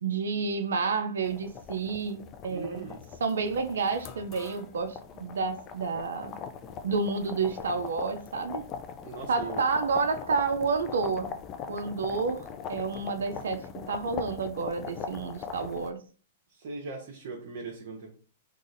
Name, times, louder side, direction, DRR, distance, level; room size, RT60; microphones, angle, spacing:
voice 1, 0.0-2.8 3.2-6.3 6.8-8.6 9.3-11.3 11.7-16.0, right 4 dB, 75° right, 8 dB, 0.4 m, -30 dB
sound 1, 1.2-15.9, left 6 dB, 30° left, 0.4 m, -41 dB
voice 2, 2.5-3.0 9.0-9.6 16.5-18.1, right 3 dB, 55° right, 0 dB, 0.8 m, -39 dB
3.8 x 2.4 x 2.5 m, 0.41 s
hypercardioid pair, 115°, 0 cm